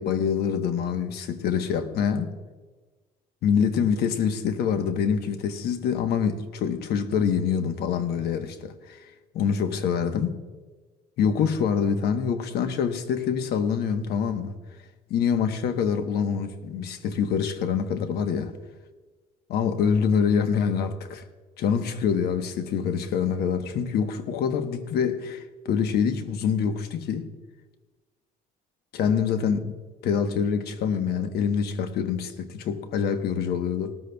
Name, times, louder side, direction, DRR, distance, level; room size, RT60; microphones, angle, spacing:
voice 1, 0.0-2.3 3.4-9.0 9.3-10.4 11.2-14.5 15.1-18.5 19.5-21.2 21.6-27.3 28.9-29.7 30.0-34.0, left 7 dB, 70° left, 1.1 m, -25 dB
19.0 x 13.5 x 2.3 m
cardioid pair, 110°, 17 cm